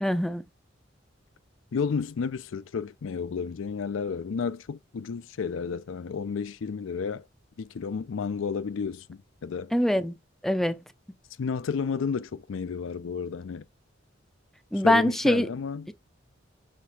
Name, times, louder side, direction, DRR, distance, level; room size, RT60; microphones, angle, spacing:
voice 1, 0.0-0.5 9.7-10.2 10.4-10.8 14.7-15.5, equal, ahead, 0.4 m, -23 dB
voice 2, 1.7-7.2 7.6-9.7 11.4-13.7 14.8-15.9, left 5 dB, 80° left, 0.4 m, -32 dB
6.6 x 3.4 x 5.6 m
head